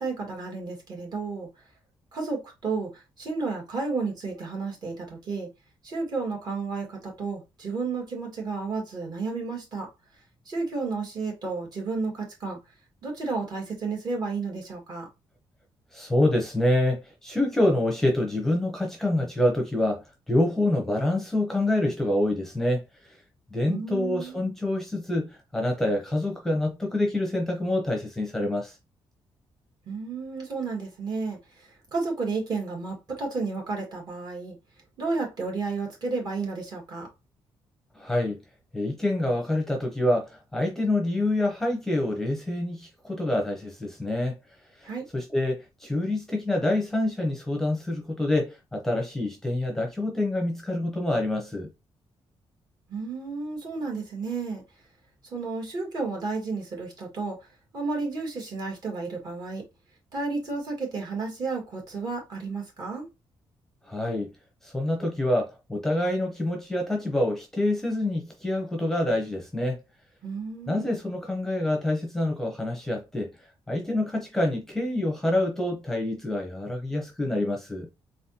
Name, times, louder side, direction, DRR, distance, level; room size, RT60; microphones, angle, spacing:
voice 1, 0.0-1.5 2.1-5.5 5.8-9.9 10.5-12.6 13.0-15.1 23.7-24.4 29.9-31.4 31.9-34.6 35.0-37.1 44.8-45.0 52.9-54.6 55.3-57.4 57.7-59.6 60.1-63.1 70.2-70.9, right 4 dB, 45° right, 2.0 m, -32 dB
voice 2, 15.9-23.2 23.5-28.8 37.9-38.4 38.7-44.4 44.8-51.7 63.9-64.3 64.6-69.8 70.7-73.3 73.7-77.9, left 1 dB, 5° left, 0.8 m, -26 dB
4.0 x 3.8 x 2.8 m
wide cardioid pair, 170°, 10 cm